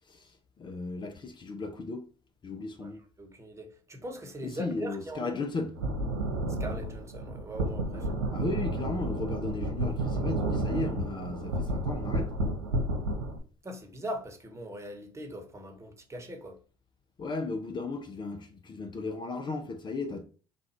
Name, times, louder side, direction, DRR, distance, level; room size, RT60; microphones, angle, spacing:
voice 1, 0.6-2.0 2.4-3.0 4.4-5.7 7.9-12.3 17.2-20.2, left 3 dB, 35° left, 0.7 m, -35 dB
voice 2, 2.8-5.5 6.5-8.1 13.6-16.6, right 1 dB, 20° right, 1.3 m, -41 dB
sound 1, 5.7-13.4, right 1 dB, 85° right, 0.8 m, -31 dB
3.8 x 2.5 x 4.4 m
hypercardioid pair, 55°, 13 cm